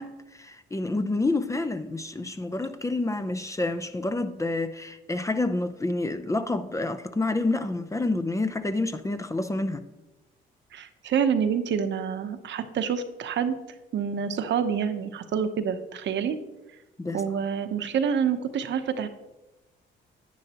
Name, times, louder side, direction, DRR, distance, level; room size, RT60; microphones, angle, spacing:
voice 1, 0.0-9.9 17.0-17.2, left 2 dB, 15° left, 0.5 m, -28 dB
voice 2, 10.7-13.6 13.9-16.4 17.1-19.1, right 7 dB, 65° right, 0.9 m, -27 dB
10.0 x 9.7 x 2.9 m
cardioid pair, 90°, 20 cm